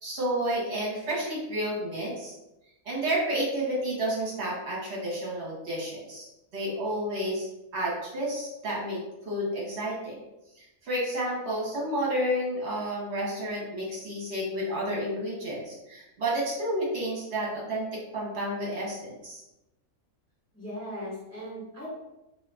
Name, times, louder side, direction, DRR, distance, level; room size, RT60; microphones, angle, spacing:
voice 1, 0.0-2.3 2.8-6.3 6.5-7.5 7.7-9.0 9.2-10.2 10.6-19.4, right 1 dB, 50° right, -4 dB, 1.2 m, -31 dB
voice 2, 20.5-21.9, equal, 10° left, -9 dB, 1.1 m, -38 dB
2.6 x 2.3 x 3.3 m, 0.94 s
omnidirectional pair, 1.6 m